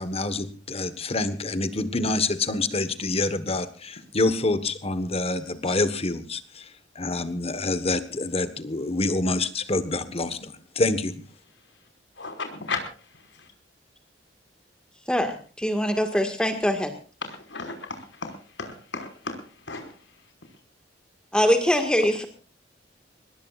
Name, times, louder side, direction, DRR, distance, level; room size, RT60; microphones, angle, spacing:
voice 1, 0.0-6.7 6.9-11.2, left 2 dB, 35° left, 12 dB, 1.4 m, -27 dB
voice 2, 12.2-13.5 17.2-20.0, left 4 dB, 80° left, 5 dB, 5.5 m, -35 dB
voice 3, 15.1-16.9 21.3-22.3, equal, 5° left, 5 dB, 1.8 m, -23 dB
23.0 x 20.5 x 2.5 m, 0.38 s
head